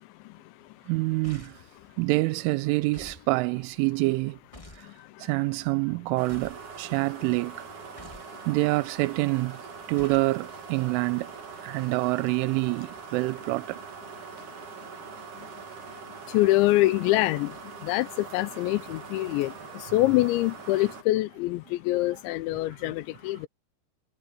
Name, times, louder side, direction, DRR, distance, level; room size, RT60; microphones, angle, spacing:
voice 1, 0.9-1.6 2.0-4.4 5.2-7.6 8.5-9.6 9.9-11.3 11.6-13.8, right 23 dB, 85° right, 3.1 m, -26 dB
sound 1, 1.2-1.7 2.9-3.3 4.5-4.9 6.3-6.7 8.0-8.3 10.0-10.3, left 1 dB, 15° left, 1.4 m, -47 dB
sound 2, 6.2-21.0, right 6 dB, 45° right, 3.8 m, -43 dB
voice 2, 16.3-17.5 17.8-19.5 19.9-23.5, left 18 dB, 80° left, 2.7 m, -24 dB
omnidirectional pair, 5.7 m